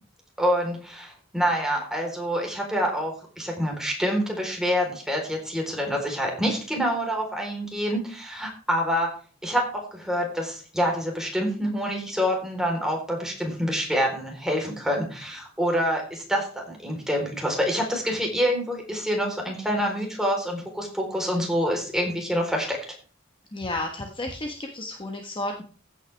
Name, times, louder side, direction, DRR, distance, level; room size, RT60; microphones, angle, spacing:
voice 1, 0.4-9.1 9.4-22.8, equal, 5° right, 1 dB, 4.0 m, -26 dB
voice 2, 23.5-25.6, left 2 dB, 25° left, 2 dB, 1.4 m, -32 dB
15.0 x 9.2 x 3.5 m, 0.40 s
head